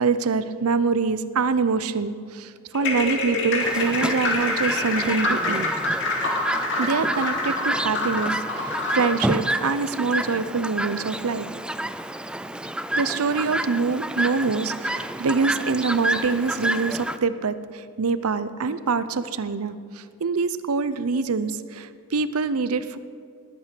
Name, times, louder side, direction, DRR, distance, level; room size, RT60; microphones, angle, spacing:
voice 1, 0.0-5.7 6.8-11.5 13.0-23.0, right 4 dB, 80° right, 14 dB, 0.6 m, -25 dB
sound 1, 2.7-9.2, left 2 dB, 55° left, 2.4 m, -26 dB
Chirp tweet, 3.6-17.2, right 1 dB, 5° right, 0.3 m, -29 dB
19.5 x 9.0 x 6.0 m, 2.2 s
head